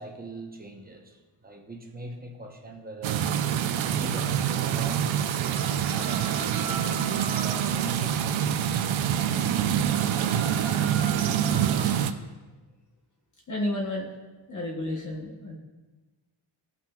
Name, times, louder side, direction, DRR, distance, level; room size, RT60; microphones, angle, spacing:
voice 1, 0.0-3.4 3.8-6.8 7.2-8.6, right 2 dB, 20° right, 1 dB, 0.8 m, -42 dB
sound 1, 3.0-12.1, right 9 dB, 75° right, 0.6 m, -26 dB
sound 2, 5.5-7.8 9.9-11.9, right 3 dB, 45° right, 1.3 m, -38 dB
sound 3, 5.8-11.4, left 1 dB, 65° left, 2.9 m, -53 dB
voice 2, 13.5-14.1 14.5-15.6, left 1 dB, 40° left, -2 dB, 1.0 m, -31 dB
16.5 x 5.8 x 2.3 m, 1.2 s
wide cardioid pair, 175°, 47 cm